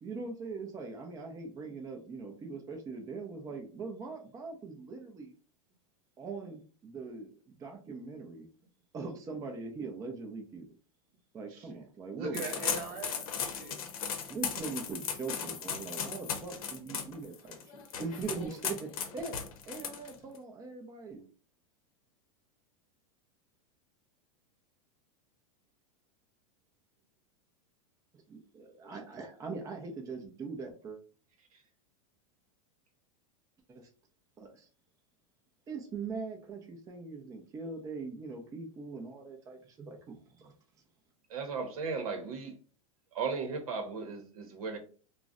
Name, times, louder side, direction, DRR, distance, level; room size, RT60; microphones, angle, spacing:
voice 1, 0.0-5.3 6.2-8.5 8.9-10.7 11.3-12.6 14.3-19.4 19.6-21.3 28.3-31.0 33.7-33.9 34.4-34.7 35.7-40.5, right 4 dB, 20° right, 2 dB, 0.5 m, -41 dB
voice 2, 11.5-11.8 12.2-13.9, right 4 dB, 45° right, 3 dB, 0.8 m, -41 dB
sound 1, 12.3-20.4, left 7 dB, 75° left, 0.7 m, -37 dB
voice 3, 41.3-42.6 43.1-44.8, right 5 dB, 85° right, 4 dB, 0.8 m, -36 dB
2.4 x 2.1 x 3.6 m, 0.39 s
supercardioid pair, 135°, 18 cm